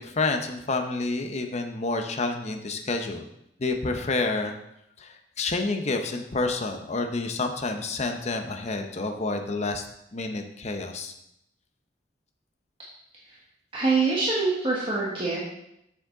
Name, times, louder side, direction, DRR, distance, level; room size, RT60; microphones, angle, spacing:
voice 1, 0.0-3.3 3.6-4.5 5.0-9.9 10.1-11.1, left 3 dB, 40° left, 5 dB, 0.8 m, -29 dB
voice 2, 13.7-15.4, right 3 dB, 30° right, -6 dB, 1.4 m, -24 dB
7.2 x 7.1 x 3.8 m, 0.79 s
head